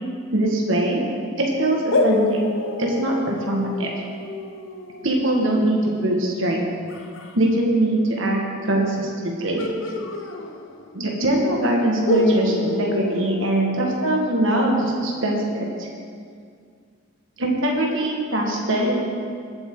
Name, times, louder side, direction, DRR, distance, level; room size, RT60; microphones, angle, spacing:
voice 1, 0.3-1.1 1.4-2.4 2.8-3.9 5.0-6.7 7.3-9.6 10.9-15.9 17.4-19.1, right 1 dB, 70° right, -1 dB, 1.9 m, -22 dB
sound 1, 1.9-7.3 9.6-11.0 11.3-11.4 12.0-14.2, left 2 dB, 70° left, 0.9 m, -27 dB
20.0 x 8.1 x 3.9 m, 2.1 s
head